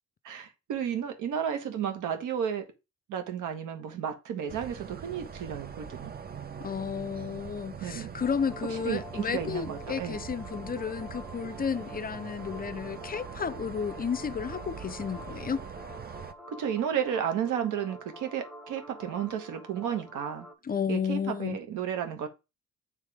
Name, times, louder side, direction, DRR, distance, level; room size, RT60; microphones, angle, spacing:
voice 1, 0.2-2.6 3.1-6.1 7.8-8.1 8.8-10.2 16.5-20.5 20.9-22.3, right 8 dB, 85° right, 1.5 m, -32 dB
sound 1, 4.5-16.3, right 6 dB, 30° right, 0.7 m, -43 dB
voice 2, 6.6-15.6 20.6-21.6, left 6 dB, 30° left, 0.5 m, -32 dB
sound 2, 8.2-20.5, right 1 dB, ahead, 1.8 m, -47 dB
7.0 x 3.5 x 4.8 m
cardioid pair, 90°, 30 cm